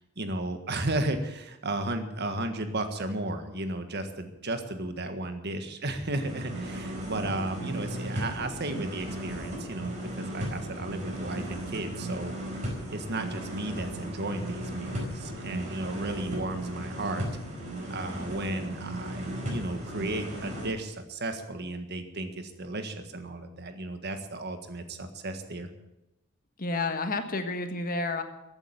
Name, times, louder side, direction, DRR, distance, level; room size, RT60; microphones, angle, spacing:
voice 1, 0.2-9.9 10.2-12.3 12.9-17.2 17.9-25.7, right 2 dB, 50° right, 7 dB, 1.6 m, -34 dB
sound 1, 6.2-20.7, right 1 dB, 35° right, 4.5 m, -36 dB
voice 2, 26.6-28.2, left 3 dB, 45° left, 7 dB, 1.5 m, -30 dB
15.0 x 8.9 x 9.0 m, 0.91 s
head